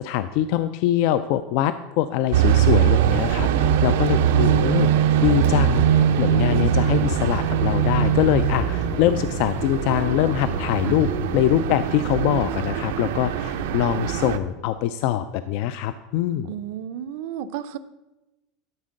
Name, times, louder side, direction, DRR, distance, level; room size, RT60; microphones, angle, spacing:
voice 1, 0.0-4.9 5.2-16.5, left 12 dB, 50° left, 12 dB, 0.3 m, -23 dB
sound 1, 2.3-14.4, right 10 dB, 85° right, 0.7 m, -22 dB
sound 2, 5.1-11.7, left 5 dB, 90° left, 2.4 m, -33 dB
voice 2, 16.5-17.8, right 10 dB, 55° right, 13 dB, 0.5 m, -32 dB
12.5 x 4.5 x 6.3 m, 1.0 s
supercardioid pair, 175°, 0 cm